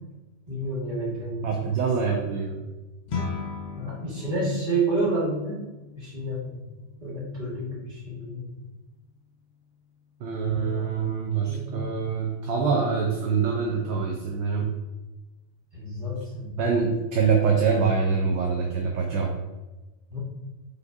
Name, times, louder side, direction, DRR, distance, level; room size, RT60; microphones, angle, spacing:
voice 1, 0.5-1.7 3.7-5.6 5.9-6.6 7.0-8.5 10.5-11.0 11.5-11.7 15.7-16.6 20.1-20.2, right 2 dB, 40° right, -8 dB, 1.8 m, -30 dB
voice 2, 1.4-2.6 10.2-14.7 16.6-19.4, right 5 dB, 65° right, 1 dB, 0.8 m, -25 dB
sound 1, 3.1-12.6, left 4 dB, 75° left, 0.4 m, -41 dB
5.1 x 3.2 x 2.6 m, 1.1 s
omnidirectional pair, 1.3 m